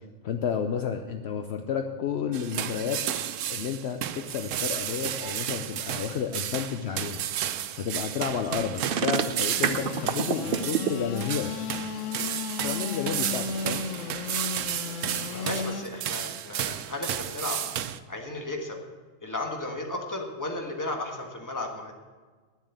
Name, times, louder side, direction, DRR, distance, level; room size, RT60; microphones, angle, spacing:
voice 1, 0.2-3.0 3.5-7.2 7.8-11.5 12.6-13.9, left 7 dB, 65° left, 6 dB, 0.9 m, -31 dB
sound 1, 2.3-18.0, right 10 dB, 85° right, 1.0 m, -32 dB
sound 2, 8.8-10.9, right 8 dB, 55° right, 0.7 m, -26 dB
Engine / Sawing, 9.6-15.8, left 6 dB, 80° left, 1.1 m, -35 dB
voice 2, 15.3-17.6 18.1-18.8 19.2-21.9, left 2 dB, 15° left, 2 dB, 1.5 m, -34 dB
9.9 x 7.4 x 8.1 m, 1.4 s
omnidirectional pair, 1.3 m